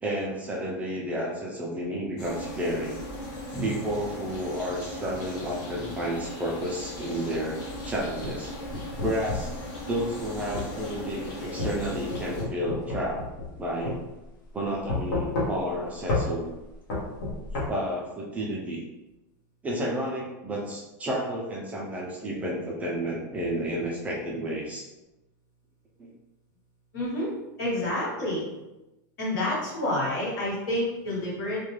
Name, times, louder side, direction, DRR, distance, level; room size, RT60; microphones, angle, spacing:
voice 1, 0.0-3.0 3.5-7.6 7.9-8.5 9.0-9.5 9.9-13.2 13.6-14.0 14.5-16.5 17.6-18.8 19.6-24.9 26.0-26.1, equal, 15° right, -3 dB, 0.3 m, -31 dB
sound 1, 2.2-12.4, left 1 dB, 45° left, 0.8 m, -38 dB
sound 2, 8.2-9.6 10.5-10.7 11.6-13.6 13.9-14.0 14.9-15.8 16.1-16.3 16.9-17.7, left 2 dB, 85° left, 0.8 m, -30 dB
voice 2, 26.9-27.3 27.6-28.5 29.2-31.6, left 1 dB, 65° left, -6 dB, 1.3 m, -28 dB
2.3 x 2.2 x 3.0 m, 1.0 s
supercardioid pair, 155°, 10 cm